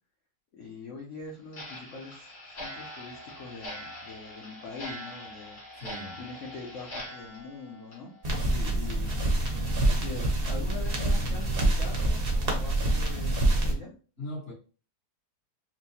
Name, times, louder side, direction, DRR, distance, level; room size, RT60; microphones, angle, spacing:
voice 1, 0.5-2.3 2.6-5.6 6.2-8.1 8.7-9.1 9.8-13.9, left 3 dB, 55° left, 0.9 m, -43 dB
Clock, 1.5-8.7 9.0-9.2 9.7-9.8 10.2-10.3 10.8-10.9 11.4-11.5 12.0-12.2, equal, 80° left, 2.4 m, -43 dB
voice 2, 5.8-6.2 8.4-9.2 14.2-14.5, left 1 dB, 35° left, 1.5 m, -40 dB
sound 1, 8.2-13.7, right 1 dB, 45° right, 0.8 m, -26 dB
4.5 x 2.1 x 2.8 m
omnidirectional pair, 1.9 m